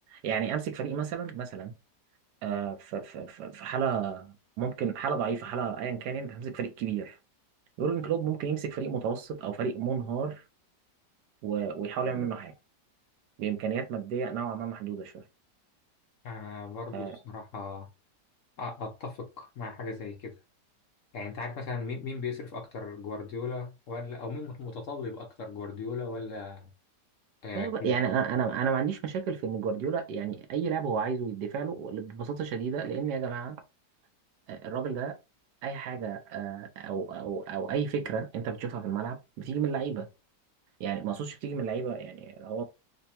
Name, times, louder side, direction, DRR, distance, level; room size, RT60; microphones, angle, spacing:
voice 1, 0.1-1.7 2.4-7.2 7.8-10.4 11.4-12.5 13.4-15.2 16.9-17.2 27.5-33.6 34.5-35.2 35.6-40.1 40.8-42.6, right 7 dB, 75° right, 1.2 m, -32 dB
voice 2, 16.2-17.9 18.6-20.3 21.1-26.7 27.4-27.9, left 4 dB, 60° left, 0.8 m, -37 dB
3.3 x 2.1 x 4.1 m
omnidirectional pair, 1.9 m